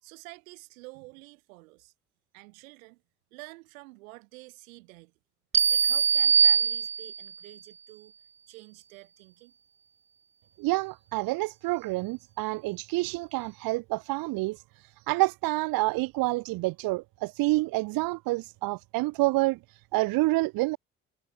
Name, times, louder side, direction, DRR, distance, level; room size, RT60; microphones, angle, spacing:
voice 1, 0.0-1.9 2.3-3.0 3.3-5.1 5.7-8.1 8.5-9.5, right 25 dB, 75° right, 2.6 m, -49 dB
sound 1, 5.5-7.4, right 7 dB, 15° right, 0.4 m, -22 dB
voice 2, 10.6-14.6 15.1-19.6 19.9-20.8, right 21 dB, 55° right, 0.7 m, -28 dB
figure-of-eight pair, 40°, 41 cm